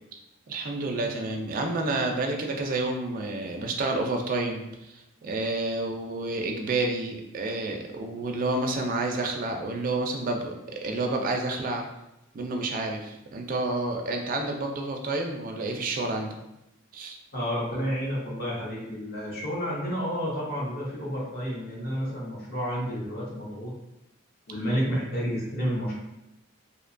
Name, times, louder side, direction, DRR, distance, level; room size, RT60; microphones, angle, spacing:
voice 1, 0.5-11.8 12.3-16.4 16.9-17.2, right 2 dB, 40° right, 3 dB, 0.3 m, -29 dB
voice 2, 17.3-23.7 24.5-25.9, equal, 50° left, -4 dB, 0.7 m, -30 dB
2.6 x 2.1 x 2.4 m, 0.89 s
head